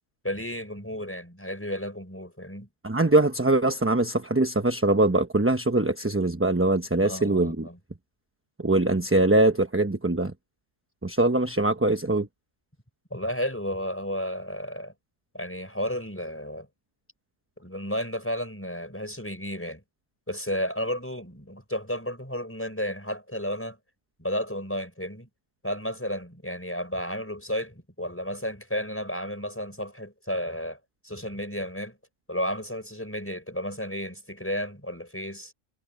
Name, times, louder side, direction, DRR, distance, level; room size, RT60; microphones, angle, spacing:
voice 1, 0.2-2.7 7.0-7.8 13.1-14.9 15.3-16.7 17.6-19.8 20.3-23.8 24.2-25.3 25.6-30.8 31.0-32.0 32.3-35.5, equal, 10° left, 4.9 m, -32 dB
voice 2, 2.8-7.7 8.6-10.3 11.0-12.3, right 2 dB, 10° right, 0.8 m, -22 dB
omnidirectional pair, 1.4 m